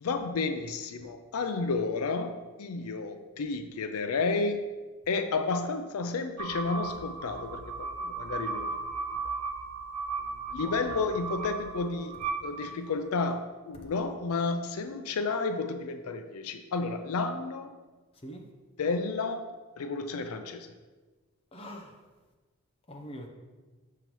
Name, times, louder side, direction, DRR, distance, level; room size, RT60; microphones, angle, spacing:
voice 1, 0.0-4.6 5.1-8.7 10.5-17.7 18.8-19.4 19.8-20.7, left 4 dB, 80° left, 8 dB, 0.4 m, -31 dB
sound 1, 6.4-13.1, right 4 dB, 90° right, 0.7 m, -36 dB
voice 2, 10.6-11.1 18.2-18.5 21.5-21.9 22.9-23.3, equal, 25° left, 1 dB, 0.6 m, -43 dB
6.7 x 5.6 x 3.0 m, 1.3 s
head